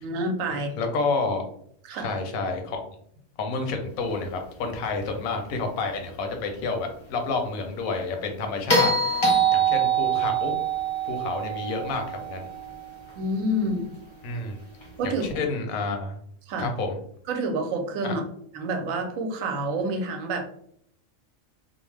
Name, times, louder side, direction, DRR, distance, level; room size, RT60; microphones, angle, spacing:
voice 1, 0.0-0.7 1.9-2.2 13.2-13.9 15.0-15.2 16.5-16.7 17.3-18.2 18.5-20.4, right 1 dB, 80° right, 4 dB, 1.0 m, -28 dB
voice 2, 0.8-1.4 2.0-2.8 3.4-9.2 9.5-10.5 11.0-12.5 14.2-14.6 15.0-16.2 16.6-17.0 18.0-18.1, left 3 dB, 90° left, 4 dB, 1.0 m, -29 dB
sound 1, 8.7-13.0 15.2-15.3, right 4 dB, 45° left, 0.3 m, -24 dB
2.7 x 2.0 x 3.1 m, 0.66 s
omnidirectional pair, 1.4 m